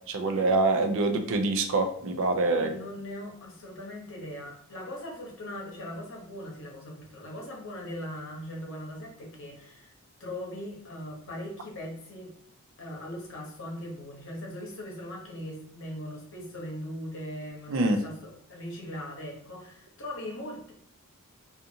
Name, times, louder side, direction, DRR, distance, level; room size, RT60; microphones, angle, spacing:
voice 1, 0.1-2.7 17.7-18.0, right 2 dB, 60° right, 6 dB, 0.4 m, -25 dB
voice 2, 2.6-9.9 10.2-12.3 12.8-20.7, left 1 dB, 60° left, -1 dB, 0.9 m, -40 dB
2.5 x 2.4 x 2.7 m, 0.65 s
head